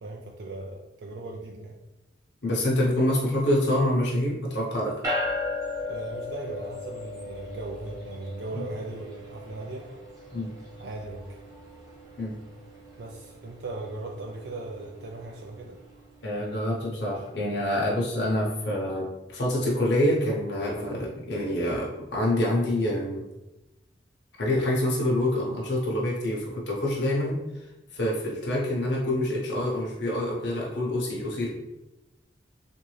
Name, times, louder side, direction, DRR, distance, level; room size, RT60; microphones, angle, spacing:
voice 1, 0.0-1.8 5.9-9.9 10.8-11.4 13.0-15.8, right 2 dB, 65° right, 0 dB, 0.4 m, -38 dB
voice 2, 2.4-4.9 8.5-8.6 10.3-10.5 12.2-12.3 16.2-19.1 19.3-23.2 24.4-27.4 27.9-31.5, left 1 dB, 70° left, -4 dB, 0.8 m, -26 dB
sound 1, 5.0-16.6, left 2 dB, 20° right, 1.0 m, -37 dB
3.6 x 2.6 x 3.1 m, 0.98 s
head